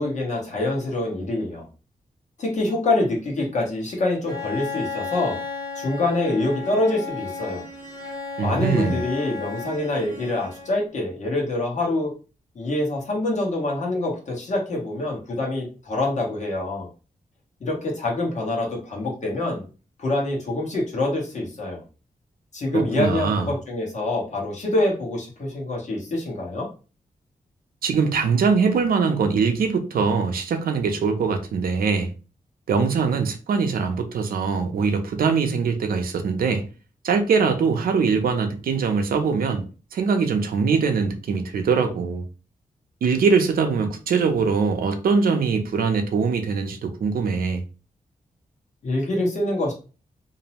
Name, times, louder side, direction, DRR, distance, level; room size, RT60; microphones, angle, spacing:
voice 1, 0.0-1.7 2.4-5.4 5.7-7.6 8.4-12.1 12.5-16.9 17.6-19.6 20.0-21.8 22.5-26.7 48.8-49.7, left 2 dB, 55° left, 1.0 m, -25 dB
Bowed string instrument, 4.3-11.0, left 4 dB, 25° left, 0.7 m, -34 dB
voice 2, 8.4-9.0 22.7-23.5 27.8-32.1 32.7-36.6 37.0-39.7 39.9-42.2 43.0-47.6, right 5 dB, 80° right, 0.5 m, -22 dB
2.6 x 2.0 x 2.8 m
wide cardioid pair, 175°, 15 cm